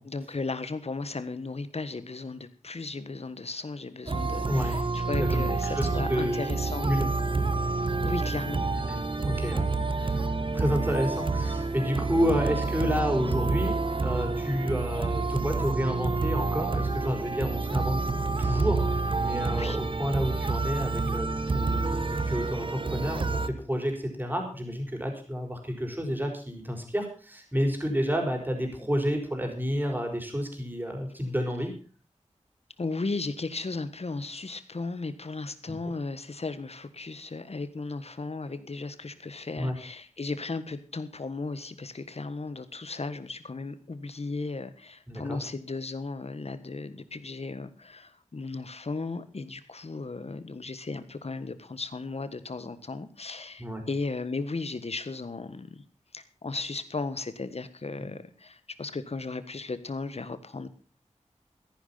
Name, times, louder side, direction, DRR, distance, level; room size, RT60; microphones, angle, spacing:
voice 1, 0.0-6.9 8.0-8.7 19.6-19.8 32.8-55.8 56.1-60.7, left 3 dB, 60° left, 12 dB, 1.5 m, -35 dB
sound 1, 4.1-23.5, right 3 dB, 45° right, 1.1 m, -28 dB
voice 2, 4.5-4.8 5.2-6.4 6.8-7.1 8.9-10.2 10.5-18.0 18.4-21.3 21.5-31.7 35.7-35.8 39.6-39.7 45.1-45.4 53.6-53.9, equal, 15° right, 2 dB, 5.1 m, -30 dB
14.5 x 10.5 x 5.8 m, 0.41 s
wide cardioid pair, 55°, 12 cm